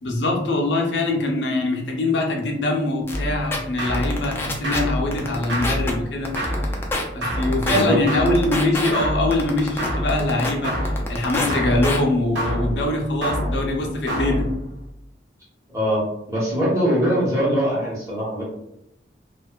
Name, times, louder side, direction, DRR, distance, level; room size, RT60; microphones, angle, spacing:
voice 1, 0.0-6.3 7.1-14.5, left 2 dB, 75° left, 0 dB, 0.5 m, -23 dB
sound 1, 3.1-3.2 3.5-3.6 3.9-4.8 5.1-5.9 6.2-7.0 7.4-7.8 8.3-8.9 9.3-10.5 10.8-11.5 11.8-12.0, left 2 dB, 15° left, 0.3 m, -26 dB
sound 2, 3.1-14.9, equal, 85° right, 0.7 m, -28 dB
voice 2, 15.7-18.4, equal, 20° right, -7 dB, 0.9 m, -22 dB
2.5 x 2.2 x 2.2 m, 0.81 s
head